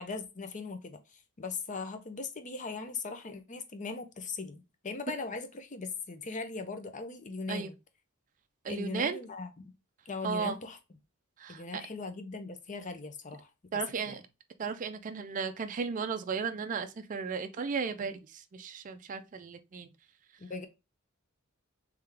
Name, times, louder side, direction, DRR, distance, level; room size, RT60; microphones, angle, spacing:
voice 1, 0.0-7.7 8.7-9.7 10.1-10.8 11.5-13.5 14.1-14.2 20.4-20.7, left 4 dB, 35° left, 0.6 m, -39 dB
voice 2, 8.6-9.2 10.2-10.6 11.4-11.8 13.7-14.2 14.6-19.9, right 5 dB, 35° right, 0.4 m, -35 dB
3.6 x 3.3 x 3.3 m
head